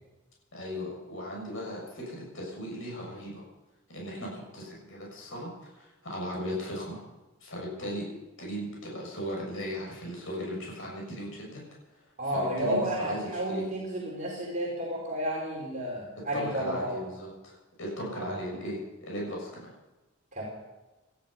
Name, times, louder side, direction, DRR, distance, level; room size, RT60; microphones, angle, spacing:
voice 1, 0.5-3.4 3.9-7.0 7.4-8.1 8.4-11.6 12.3-13.6 16.3-19.7, equal, 60° left, -2 dB, 6.5 m, -37 dB
voice 2, 12.2-16.9 18.2-18.4 20.3-20.4, right 1 dB, 35° right, -4 dB, 4.2 m, -31 dB
19.0 x 12.5 x 5.6 m, 1.1 s
head